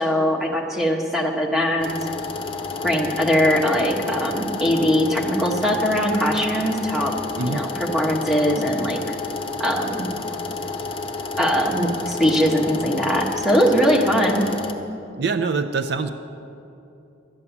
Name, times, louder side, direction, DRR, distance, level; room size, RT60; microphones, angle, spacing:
voice 1, 0.0-2.3 2.8-7.1 7.4-9.1 9.6-10.1 11.4-14.5, equal, ahead, -1 dB, 1.3 m, -21 dB
sound 1, 1.8-14.7, left 3 dB, 30° left, 0.8 m, -30 dB
voice 2, 7.4-7.7 15.2-16.1, right 4 dB, 60° right, 9 dB, 0.5 m, -24 dB
12.0 x 9.7 x 7.1 m, 2.7 s
head